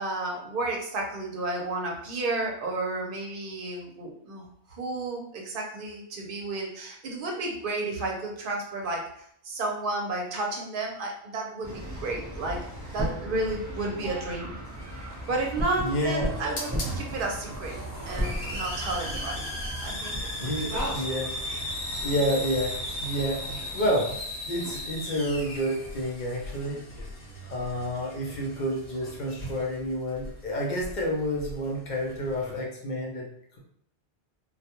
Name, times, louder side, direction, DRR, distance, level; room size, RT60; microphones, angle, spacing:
voice 1, 0.0-12.6 12.9-14.6 15.3-17.7 18.1-19.5 19.8-21.0, right 2 dB, 60° right, 0 dB, 0.7 m, -32 dB
sound 1, 11.6-24.7, equal, 20° right, 0.7 m, -36 dB
Hiss, 14.7-32.6, left 1 dB, 85° left, 1.0 m, -38 dB
voice 2, 15.8-16.3 20.4-21.3 22.0-24.1 24.4-26.8 27.5-33.3, equal, 50° left, -2 dB, 0.6 m, -29 dB
2.3 x 2.2 x 2.8 m, 0.69 s
omnidirectional pair, 1.1 m